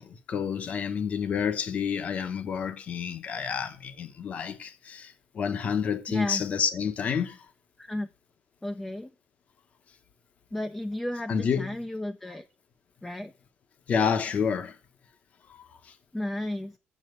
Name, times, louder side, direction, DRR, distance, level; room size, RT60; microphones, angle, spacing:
voice 1, 0.0-7.4 11.3-11.7 13.9-14.8 15.5-15.6, left 7 dB, 35° left, 1.0 m, -29 dB
voice 2, 6.1-6.4 7.8-8.1 8.6-9.1 10.5-12.5 13.0-13.3 16.1-16.8, left 1 dB, 5° left, 0.4 m, -33 dB
7.9 x 7.3 x 7.8 m
cardioid pair, 180°, 4 cm